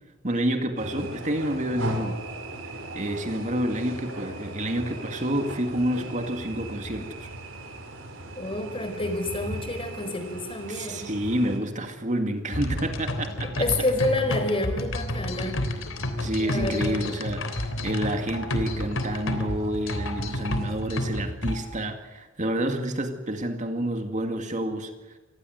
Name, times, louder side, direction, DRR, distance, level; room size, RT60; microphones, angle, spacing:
voice 1, 0.2-2.2 2.9-7.3 10.7-13.6 16.2-25.2, right 1 dB, 40° right, 6 dB, 2.2 m, -29 dB
sound 1, 0.8-11.6, right 1 dB, 75° right, 5.1 m, -37 dB
voice 2, 8.4-11.1 13.6-15.6 16.4-17.1, left 2 dB, 30° left, 7 dB, 4.7 m, -28 dB
sound 2, 12.5-21.6, left 1 dB, 75° left, 3.5 m, -30 dB
27.5 x 20.5 x 8.0 m, 1.2 s
head